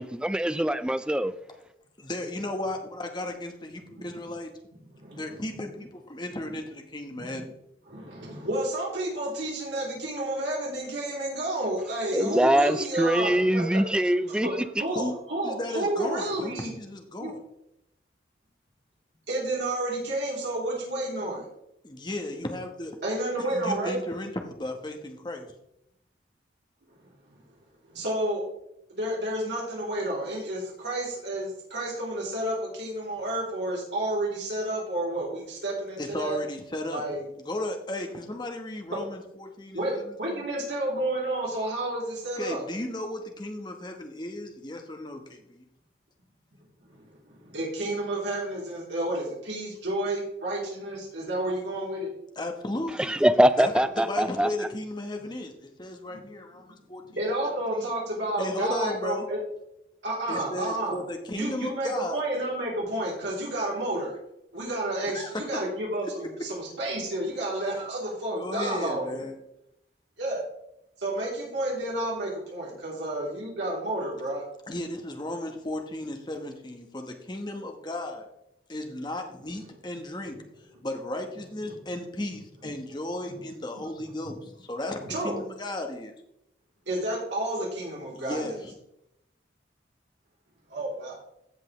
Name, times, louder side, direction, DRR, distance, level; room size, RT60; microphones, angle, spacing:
voice 1, 0.0-1.3 12.1-14.5 53.0-54.5, right 1 dB, 5° right, 0.3 m, -23 dB
voice 2, 2.0-4.5 5.1-7.5 14.9-15.1 15.4-17.4 21.8-22.9 23.4-25.5 36.0-37.0 37.4-40.4 42.4-45.6 52.4-53.1 53.6-53.7 54.0-57.0 57.4-57.9 58.4-59.3 60.3-62.2 65.1-65.4 68.3-69.4 74.7-78.3 78.7-80.3 80.8-85.0 85.2-86.2 88.1-88.7, left 1 dB, 25° left, 1.1 m, -35 dB
voice 3, 5.0-5.4 6.4-6.5 7.1-7.4 7.9-13.8 14.3-14.5 14.8-16.7 17.2-17.4 19.3-21.4 23.0-24.0 27.3-27.4 27.9-28.4 28.9-36.4 36.9-37.2 39.7-39.9 40.2-42.6 46.9-52.1 57.0-59.4 60.0-61.0 61.3-64.2 64.5-69.2 70.2-70.4 71.0-74.4 81.6-81.7 85.0-85.3 86.9-88.6 90.7-91.2, right 1 dB, 80° right, 3.1 m, -31 dB
16.0 x 5.5 x 3.1 m
head